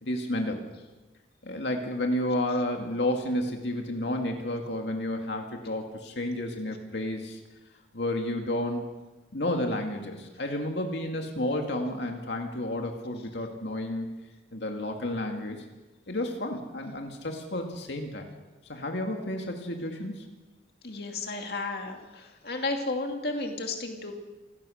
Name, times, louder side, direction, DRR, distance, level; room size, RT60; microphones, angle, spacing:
voice 1, 0.0-0.6 1.4-7.4 7.9-8.9 9.3-14.1 14.5-15.6 16.1-18.3 18.7-20.3, left 1 dB, 75° left, 3 dB, 2.3 m, -31 dB
voice 2, 20.8-24.1, left 2 dB, 55° left, 3 dB, 2.5 m, -33 dB
28.0 x 16.0 x 6.5 m, 1.1 s
head